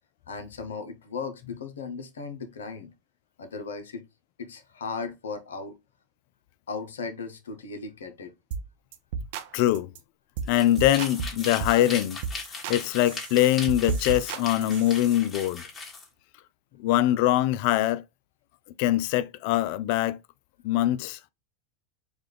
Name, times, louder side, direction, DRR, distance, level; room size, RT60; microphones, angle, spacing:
voice 1, 0.3-2.9 3.4-4.0 4.4-5.7 6.7-8.3, left 4 dB, 85° left, 0.7 m, -36 dB
sound 1, 8.5-8.7 8.9-9.5 9.7-10.0 10.4-10.5 10.8-11.8 12.2-12.8 13.1-15.1, right 6 dB, 65° right, 0.6 m, -33 dB
voice 2, 9.5-9.9 10.5-12.2 12.7-15.6 16.8-18.0 18.8-20.2 20.6-21.2, left 14 dB, 60° left, 0.3 m, -23 dB
sound 2, 10.4-16.1, left 3 dB, 25° left, 1.5 m, -39 dB
4.7 x 2.3 x 3.3 m
hypercardioid pair, 95°, 0 cm